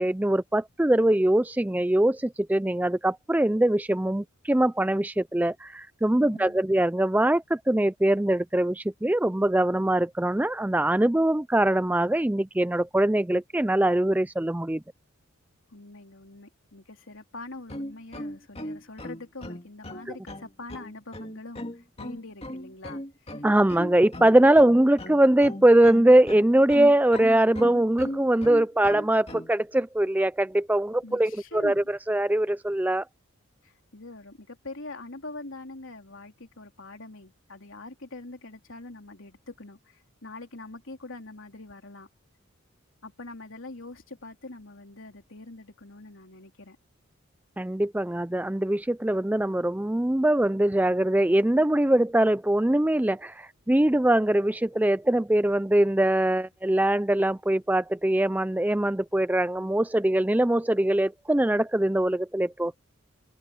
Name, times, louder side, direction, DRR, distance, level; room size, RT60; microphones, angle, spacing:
voice 1, 0.0-14.8 23.4-33.1 47.6-62.7, right 1 dB, 5° right, 0.4 m, -22 dB
voice 2, 6.2-6.6 15.7-23.4 31.0-31.8 33.6-42.1 43.0-46.8, left 2 dB, 65° left, 3.4 m, -43 dB
sound 1, 17.6-29.5, left 1 dB, 25° left, 2.3 m, -37 dB
head